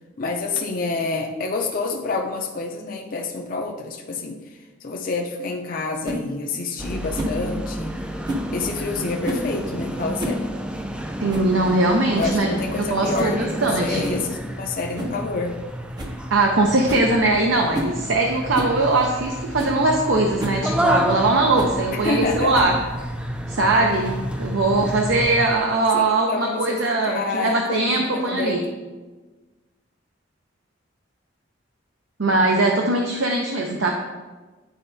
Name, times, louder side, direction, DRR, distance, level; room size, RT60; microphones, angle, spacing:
voice 1, 0.2-8.0 8.5-10.5 12.2-15.6 22.0-22.6 25.9-28.6, left 3 dB, 45° left, 1 dB, 0.5 m, -28 dB
sound 1, 6.0-6.2 7.1-7.4 8.2-8.5 9.2-9.5 10.0-10.4 10.7-10.8 11.3-11.5 11.9-12.0 12.2-12.5 13.1-13.4 14.0-14.2 15.0-15.2 15.5-15.6 16.0-16.2 16.5-16.6 16.9-17.1 17.7-18.0 18.5-18.8 19.2-19.3 19.6-19.8 20.4-20.6 21.6-21.8 22.5-22.9, equal, 20° right, 0.7 m, -30 dB
sound 2, 6.8-25.6, equal, 5° right, 0.3 m, -30 dB
voice 2, 11.2-12.5 12.8-14.0 16.3-22.7 23.5-28.6 32.2-33.9, right 2 dB, 80° right, 1 dB, 0.7 m, -21 dB
10.5 x 4.4 x 2.7 m, 1.2 s
head